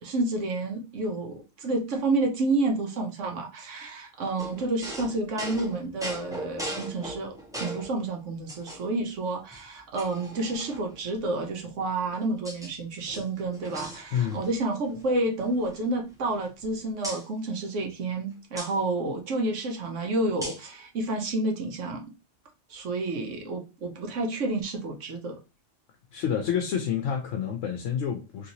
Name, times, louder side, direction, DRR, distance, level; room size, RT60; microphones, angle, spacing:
voice 1, 0.0-22.1 22.7-25.4, right 2 dB, 75° right, 1.1 m, -30 dB
sound 1, 4.4-8.0 8.5-9.1 9.5-9.6 10.0-11.0 11.8-12.7 13.0-14.6 14.8-15.1 15.4-16.7 17.0-17.2 18.6-18.7 20.4-20.7, right 1 dB, 5° right, 0.6 m, -39 dB
voice 2, 14.1-14.4 26.1-28.5, left 8 dB, 75° left, 0.9 m, -28 dB
3.1 x 2.9 x 2.6 m
omnidirectional pair, 1.3 m